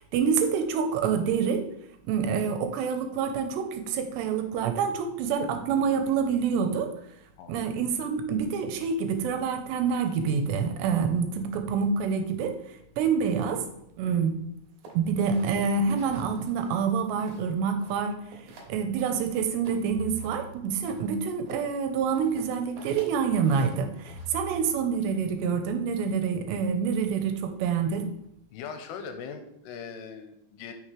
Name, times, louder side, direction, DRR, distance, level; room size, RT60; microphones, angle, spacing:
voice 1, 0.0-1.6 2.1-6.9 7.5-12.6 13.0-13.6 14.0-14.4 15.0-18.2 18.7-28.1, right 6 dB, 90° right, 6 dB, 2.9 m, -27 dB
sound 1, 14.8-17.5 17.8-18.7 19.0-20.4 20.8-24.6, right 2 dB, 65° right, 3.0 m, -48 dB
sound 2, 16.0-16.8 19.9-21.0 24.1-25.0, right 7 dB, 30° left, 3.1 m, -44 dB
voice 2, 28.5-30.7, left 6 dB, 85° left, 7 dB, 2.7 m, -40 dB
9.0 x 6.2 x 3.2 m, 0.77 s
omnidirectional pair, 4.9 m